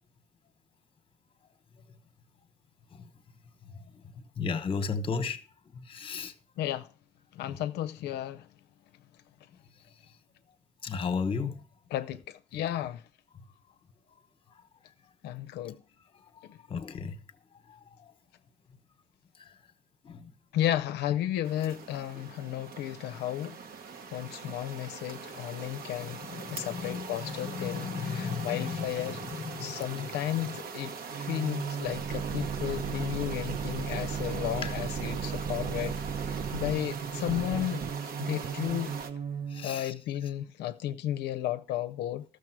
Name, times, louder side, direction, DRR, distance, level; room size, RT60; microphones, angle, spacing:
voice 1, 4.4-5.4 5.9-6.3 7.5-7.6 10.8-11.6 16.7-17.2 20.0-20.3 25.9-29.2 29.4-29.7 34.6-34.7 39.5-39.9, left 5 dB, 30° left, 1.1 m, -34 dB
voice 2, 6.6-6.9 7.3-8.5 11.9-13.0 15.2-15.8 16.5-16.6 20.5-23.6 24.1-26.2 26.5-29.2 29.6-37.8 38.2-38.9 39.6-42.2, left 12 dB, 75° left, 0.5 m, -33 dB
sound 1, 21.4-39.1, right 5 dB, 65° right, 1.3 m, -42 dB
sound 2, 31.1-39.7, right 6 dB, 40° right, 0.6 m, -35 dB
13.5 x 6.6 x 4.7 m
cardioid pair, 110°, 17 cm